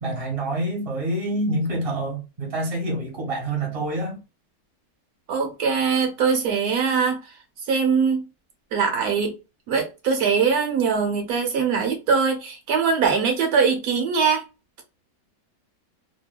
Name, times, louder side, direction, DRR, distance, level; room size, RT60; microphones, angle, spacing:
voice 1, 0.0-4.2, right 1 dB, 25° right, 0.8 m, -27 dB
voice 2, 5.3-7.2 7.7-8.2 8.7-9.3 9.7-14.4, right 5 dB, 75° right, 1.2 m, -22 dB
2.9 x 2.2 x 2.2 m
omnidirectional pair, 1.7 m